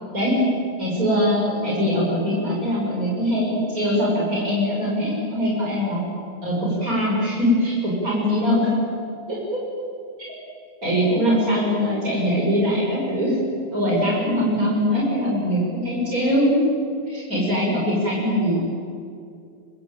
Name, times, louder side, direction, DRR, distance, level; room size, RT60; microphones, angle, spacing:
voice 1, 0.1-0.5 0.8-6.0 6.4-8.7 9.3-9.6 10.2-10.3 10.8-13.4 13.7-16.6 17.1-18.6, equal, 50° right, -4 dB, 6.8 m, -22 dB
25.0 x 25.0 x 9.1 m, 2.5 s
omnidirectional pair, 1.9 m